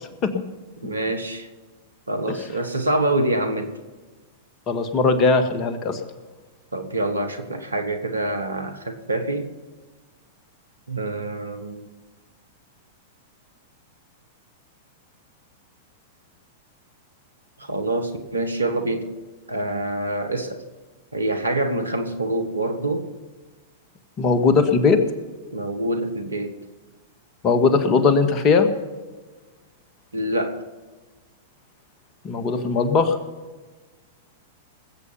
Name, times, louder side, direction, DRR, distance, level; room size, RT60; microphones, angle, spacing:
voice 1, 0.8-1.5 2.1-3.8 6.7-9.5 10.9-11.9 17.6-19.1 19.5-20.6 21.1-23.1 25.5-26.6 30.1-30.6, right 1 dB, 90° right, 8 dB, 1.6 m, -26 dB
voice 2, 4.7-6.0 24.2-25.0 27.4-28.7 32.2-33.2, left 4 dB, 35° left, 8 dB, 1.7 m, -19 dB
20.0 x 8.5 x 5.7 m, 1.3 s
figure-of-eight pair, 100°, 0 cm